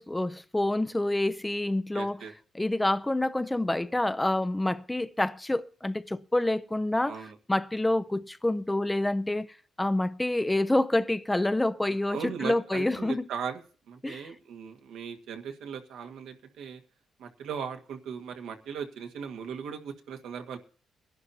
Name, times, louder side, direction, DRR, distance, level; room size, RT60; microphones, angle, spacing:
voice 1, 0.0-2.2 2.5-7.2 7.5-9.5 9.8-13.3 14.0-14.3, left 1 dB, 10° left, 0.5 m, -27 dB
voice 2, 1.9-2.3 7.0-7.3 12.1-13.6 13.9-16.8 17.2-20.6, right 7 dB, 85° right, 1.7 m, -38 dB
22.5 x 11.5 x 2.8 m
cardioid pair, 115°, 0 cm